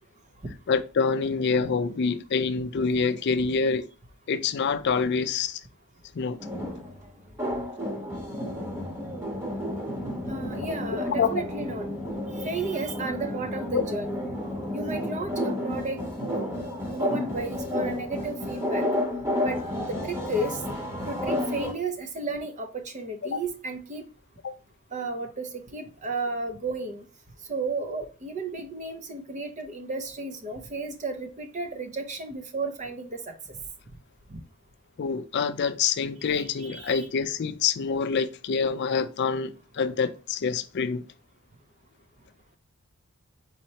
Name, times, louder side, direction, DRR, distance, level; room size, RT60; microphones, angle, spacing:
voice 1, 0.7-3.9 4.3-5.6 6.1-6.4 11.2-11.3 23.2-23.4 24.4-24.6 35.0-41.1, left 5 dB, 50° left, 0.4 m, -26 dB
sound 1, 6.4-21.7, left 1 dB, 10° right, 1.1 m, -31 dB
voice 2, 10.2-11.9 12.3-14.3 14.7-18.9 19.4-20.6 21.1-24.1 24.9-27.1 27.5-33.6 34.3-34.4 36.2-37.1, right 3 dB, 30° right, 0.6 m, -33 dB
4.3 x 4.2 x 2.8 m
head